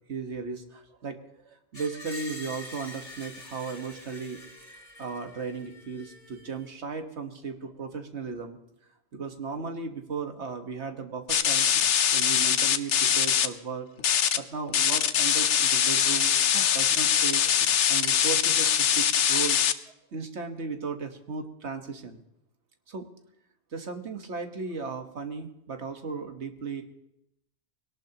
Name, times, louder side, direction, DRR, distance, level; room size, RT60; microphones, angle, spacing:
voice 1, 0.1-4.4 5.0-8.6 9.1-11.7 12.1-14.0 14.4-17.5 17.9-19.6 20.1-22.2 22.9-23.1 23.7-26.8, right 5 dB, 75° right, 6 dB, 1.7 m, -36 dB
Screech, 1.7-6.7, left 1 dB, 45° left, 3.0 m, -45 dB
sound 1, 11.3-13.5 14.0-14.4 14.7-19.7, left 9 dB, 85° left, 1.0 m, -23 dB
21.5 x 18.5 x 2.9 m, 0.83 s
omnidirectional pair, 1.2 m